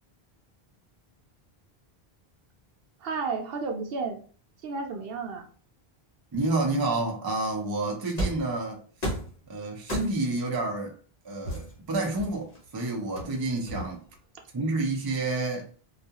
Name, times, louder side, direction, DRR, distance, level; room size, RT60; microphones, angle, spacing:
voice 1, 3.0-4.2 4.6-5.5, right 4 dB, 70° right, 0.8 m, -32 dB
voice 2, 6.3-8.8 9.5-11.0 11.2-14.0 14.5-15.7, right 2 dB, 30° right, 0.4 m, -29 dB
sound 1, 8.2-8.5 9.0-9.4 9.9-10.4 11.4-12.6 13.2-14.2, right 1 dB, 45° left, 0.8 m, -33 dB
2.3 x 2.2 x 2.8 m
omnidirectional pair, 1.0 m